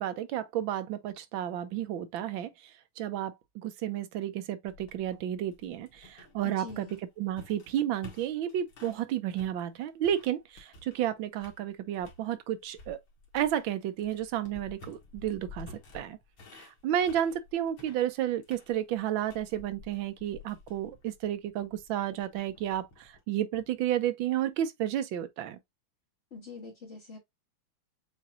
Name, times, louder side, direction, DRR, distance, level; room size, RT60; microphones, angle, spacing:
voice 1, 0.0-2.5 3.0-6.9 7.2-13.0 13.3-15.7 15.9-16.2 16.5-25.6, right 11 dB, 70° right, 1.3 m, -32 dB
sound 1, 4.7-9.0 9.4-11.1 11.4-12.3 12.7-23.2, left 3 dB, 65° left, 2.1 m, -52 dB
voice 2, 6.4-7.0 26.3-27.2, left 4 dB, 40° left, 1.1 m, -44 dB
7.2 x 2.7 x 2.4 m
omnidirectional pair, 2.4 m